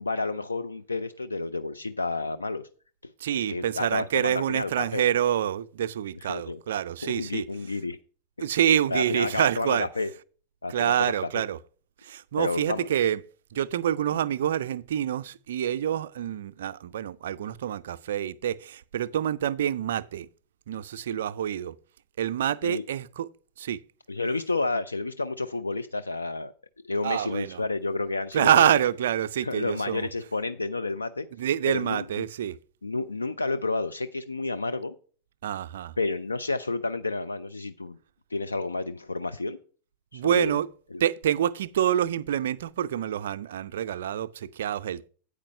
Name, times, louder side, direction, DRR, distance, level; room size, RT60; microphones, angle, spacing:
voice 1, 0.0-2.6 3.3-5.0 6.2-6.6 7.0-8.0 8.9-10.1 10.6-11.4 12.4-12.9 22.6-22.8 24.1-26.5 26.8-28.8 29.4-31.3 31.7-32.3 32.8-34.9 36.0-38.0 38.3-39.6 40.1-40.6 40.9-41.0, left 3 dB, 80° left, 0.4 m, -30 dB
voice 2, 3.2-7.4 8.4-9.9 10.7-11.6 12.0-13.2 13.5-20.3 20.7-21.8 22.2-23.3 23.6-23.8 27.0-27.6 28.3-30.1 31.3-32.6 35.4-35.9 40.1-40.7 41.0-45.1, right 10 dB, 60° right, 0.4 m, -27 dB
8.7 x 4.9 x 6.5 m
figure-of-eight pair, 90°, 0 cm